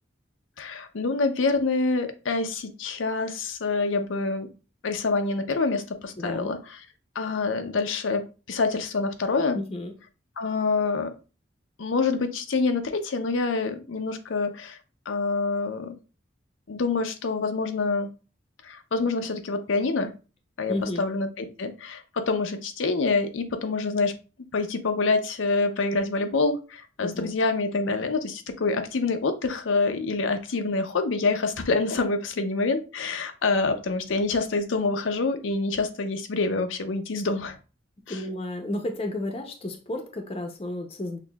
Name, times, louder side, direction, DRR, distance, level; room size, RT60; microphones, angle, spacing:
voice 1, 0.6-4.5 4.8-6.8 7.1-9.6 10.4-11.1 11.8-14.8 15.1-16.0 16.7-18.1 18.6-20.1 20.6-24.1 24.5-37.6 38.1-38.2, left 3 dB, 90° left, 7 dB, 0.6 m, -26 dB
voice 2, 6.2-6.6 9.5-9.9 20.7-21.0 27.0-27.3 38.1-41.2, left 1 dB, 30° left, 4 dB, 0.5 m, -32 dB
5.9 x 2.7 x 2.2 m, 0.33 s
head